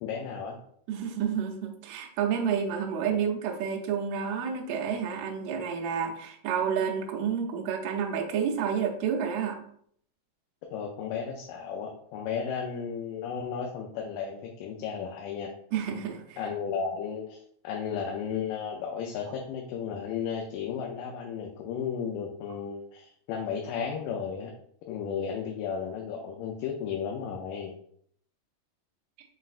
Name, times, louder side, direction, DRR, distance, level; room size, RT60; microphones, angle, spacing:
voice 1, 0.0-0.6 10.7-15.5 16.4-17.4 17.6-24.5 24.9-27.7, left 7 dB, 90° left, 1 dB, 2.3 m, -34 dB
voice 2, 0.9-9.6 15.7-16.4, right 7 dB, 85° right, 1 dB, 1.4 m, -30 dB
5.4 x 4.0 x 2.4 m, 0.64 s
omnidirectional pair, 3.7 m